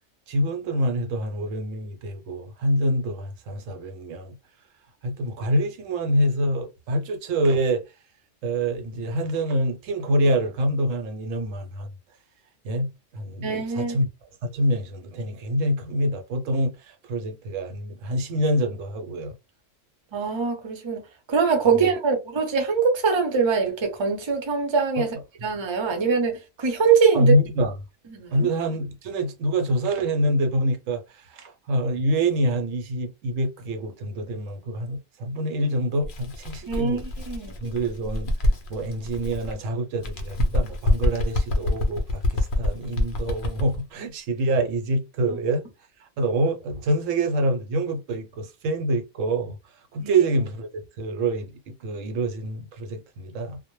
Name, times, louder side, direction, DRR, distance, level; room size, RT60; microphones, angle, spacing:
voice 1, 0.3-4.3 5.0-7.8 8.4-11.9 12.6-14.1 14.4-19.3 21.7-21.9 25.0-25.1 27.1-27.7 28.3-37.1 37.6-38.3 38.7-45.6 46.0-50.7 51.0-53.6, right 1 dB, 75° right, 0.9 m, -26 dB
voice 2, 13.4-14.0 20.1-21.0 21.3-25.1 25.4-27.3 28.1-28.5 36.7-37.5 50.0-50.1, right 5 dB, 30° right, 0.5 m, -23 dB
Bird, 36.0-39.6 40.0-43.8, left 1 dB, 65° left, 0.5 m, -26 dB
2.1 x 2.1 x 3.0 m
omnidirectional pair, 1.3 m